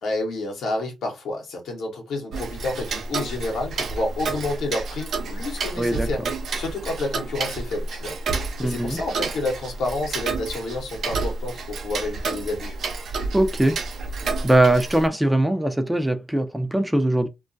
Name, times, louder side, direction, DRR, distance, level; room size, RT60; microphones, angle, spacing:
voice 1, 0.0-6.2 6.6-8.2 8.6-12.8, left 2 dB, 75° left, 0.8 m, -29 dB
Tick-tock, 2.3-15.1, right 3 dB, 70° right, 0.5 m, -30 dB
voice 2, 5.8-6.3 8.6-9.0 13.3-13.8 14.4-17.3, right 1 dB, 10° right, 0.5 m, -21 dB
2.2 x 2.1 x 2.6 m
supercardioid pair, 50°, 0 cm